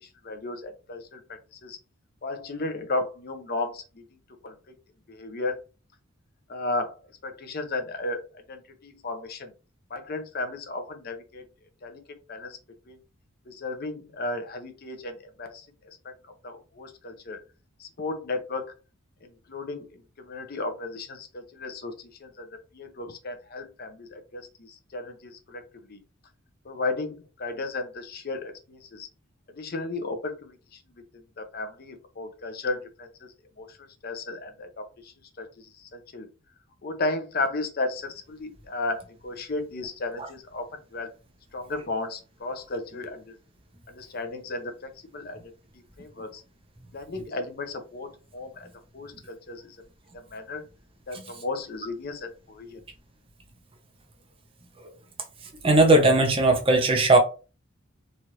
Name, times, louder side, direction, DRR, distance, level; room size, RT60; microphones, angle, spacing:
voice 1, 0.0-1.8 2.2-4.0 4.4-4.5 5.1-5.6 6.5-9.5 9.9-11.4 11.8-12.0 12.3-12.6 12.9-13.0 13.5-15.7 16.0-16.1 16.4-17.4 17.8-18.7 19.2-22.5 22.7-25.6 25.9-26.0 26.6-29.1 29.5-30.8 31.1-33.8 34.0-36.3 36.8-41.1 41.5-43.4 43.9-45.4 46.0-46.4 46.9-48.7 48.9-49.8 50.1-50.6 51.1-52.8, left 2 dB, 45° left, 0.6 m, -34 dB
voice 2, 55.6-57.2, right 2 dB, 25° right, 0.6 m, -18 dB
3.1 x 2.5 x 2.8 m
head